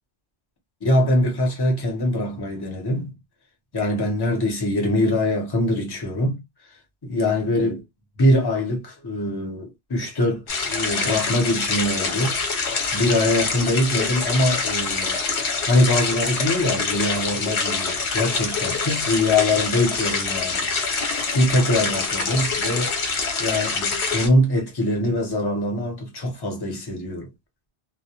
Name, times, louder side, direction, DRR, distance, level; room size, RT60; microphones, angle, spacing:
voice 1, 0.8-3.1 3.7-6.4 7.0-7.8 8.2-12.6 12.9-15.2 15.6-22.9 23.4-27.3, left 1 dB, 25° left, 0.7 m, -23 dB
sound 1, 10.5-24.3, left 4 dB, 75° left, 1.1 m, -25 dB
2.2 x 2.1 x 2.7 m
omnidirectional pair, 1.2 m